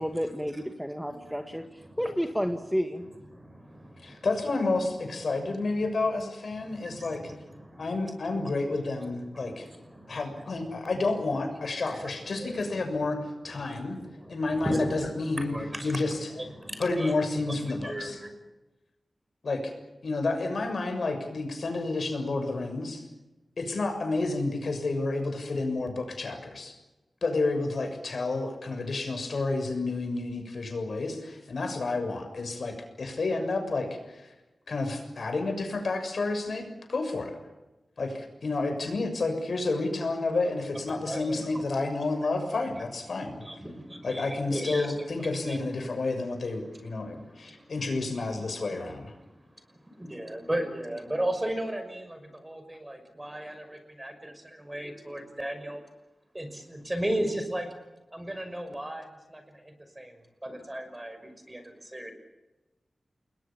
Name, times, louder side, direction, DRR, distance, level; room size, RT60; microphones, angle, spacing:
voice 1, 0.0-3.1, equal, ahead, 6 dB, 1.8 m, -31 dB
voice 2, 1.6-2.0 3.3-4.3 6.6-8.1 8.4-10.8 11.6-13.1 13.5-18.3 41.0-41.8 42.1-42.5 43.4-45.6 47.0-47.7 49.2-49.4 49.7-55.8 56.3-57.7 58.1-60.1 60.4-62.1, right 1 dB, 15° right, 7 dB, 5.8 m, -37 dB
voice 3, 4.0-7.2 7.8-9.7 10.1-13.2 13.4-14.0 14.3-15.5 15.8-16.3 16.8-18.2 19.4-19.7 20.0-23.0 23.6-26.7 27.2-34.3 34.7-37.3 38.0-43.4 44.0-49.1, left 3 dB, 65° left, 6 dB, 6.7 m, -30 dB
29.0 x 21.5 x 7.3 m, 1.0 s
wide cardioid pair, 100°, 0 cm